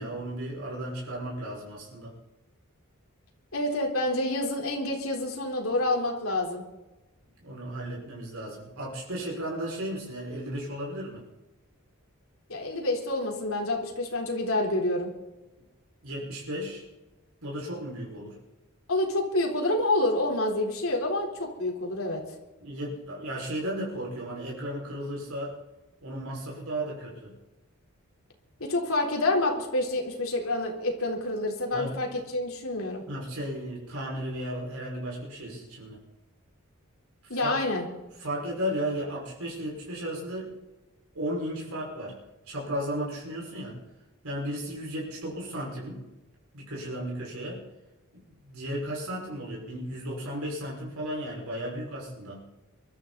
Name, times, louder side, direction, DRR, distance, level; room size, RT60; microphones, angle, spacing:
voice 1, 0.0-2.1 7.4-11.2 16.0-16.8 17.4-18.3 22.6-25.6 26.0-27.3 31.7-32.0 33.1-36.0 37.4-37.5 38.2-40.5 41.1-42.2 42.5-43.8 44.2-46.0 46.5-47.6 48.1-52.4, equal, 90° right, -3 dB, 5.4 m, -34 dB
voice 2, 3.5-6.6 12.5-15.1 18.9-22.2 28.6-33.0 37.3-37.9, left 2 dB, 70° left, 0 dB, 3.9 m, -28 dB
23.5 x 13.5 x 4.1 m, 1.1 s
head